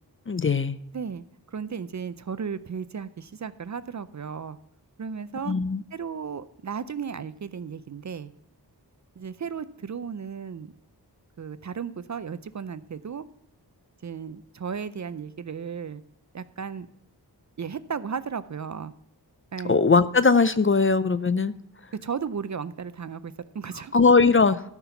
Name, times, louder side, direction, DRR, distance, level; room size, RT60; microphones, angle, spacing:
voice 1, 0.3-0.8 5.5-5.8 19.6-21.5 23.9-24.6, left 4 dB, 30° left, 14 dB, 0.4 m, -20 dB
voice 2, 0.9-4.6 5.0-5.6 5.9-8.3 9.2-10.7 11.4-13.3 14.0-16.0 16.3-16.9 17.6-18.9 19.5-19.8 22.0-23.9, right 6 dB, 45° right, 15 dB, 0.5 m, -35 dB
13.5 x 5.9 x 5.7 m, 0.71 s
wide cardioid pair, 75°, 41 cm